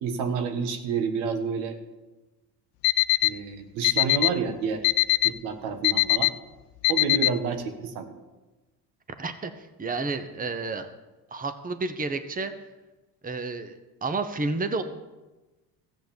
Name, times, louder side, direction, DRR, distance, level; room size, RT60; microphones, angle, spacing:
voice 1, 0.0-1.8 3.2-4.9 5.2-6.3 6.9-8.1, right 5 dB, 75° right, 7 dB, 1.6 m, -29 dB
Alarm, 2.8-3.3 3.8-4.3 4.8-5.3 5.8-6.3 6.8-7.3, left 22 dB, 70° left, 0.6 m, -20 dB
voice 2, 9.2-10.9 11.3-12.5 13.2-13.7 14.0-14.8, right 3 dB, 15° right, 10 dB, 1.0 m, -30 dB
14.0 x 8.2 x 7.0 m, 1.1 s
hypercardioid pair, 75°, 48 cm